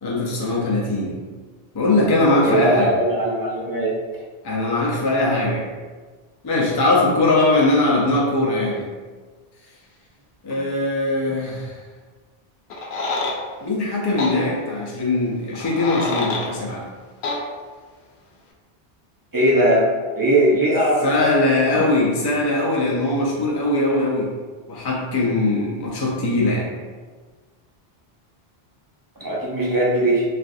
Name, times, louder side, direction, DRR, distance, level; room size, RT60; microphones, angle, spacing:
voice 1, 0.0-1.2 1.7-3.0 4.4-5.6 6.4-8.9 10.4-11.8 13.6-16.8 21.0-24.3 24.7-26.7, left 2 dB, 30° left, -4 dB, 0.5 m, -20 dB
voice 2, 2.4-3.9 10.5-10.6 19.3-19.8 20.1-21.3 29.2-30.2, right 1 dB, 25° right, -6 dB, 0.7 m, -19 dB
sound 1, 12.7-13.4 14.2-14.4 15.5-16.5 17.2-17.4, left 3 dB, 90° left, 0.9 m, -26 dB
3.2 x 2.4 x 2.6 m, 1.4 s
omnidirectional pair, 1.1 m